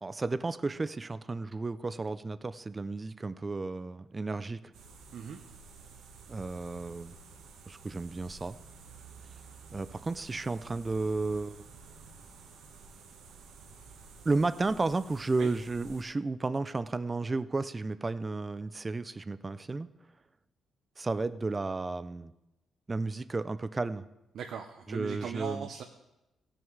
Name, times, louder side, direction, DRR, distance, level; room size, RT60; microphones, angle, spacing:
voice 1, 0.0-4.7 6.3-7.1 7.7-8.6 9.7-11.7 14.2-19.9 21.0-22.3 22.9-24.0 24.9-25.7, right 3 dB, 20° right, 14 dB, 0.4 m, -33 dB
sound 1, 4.7-16.0, right 4 dB, 85° right, 1.4 m, -52 dB
voice 2, 24.3-25.8, right 7 dB, 65° right, 4 dB, 0.7 m, -39 dB
17.0 x 6.3 x 4.6 m, 0.92 s
cardioid pair, 140°, 0 cm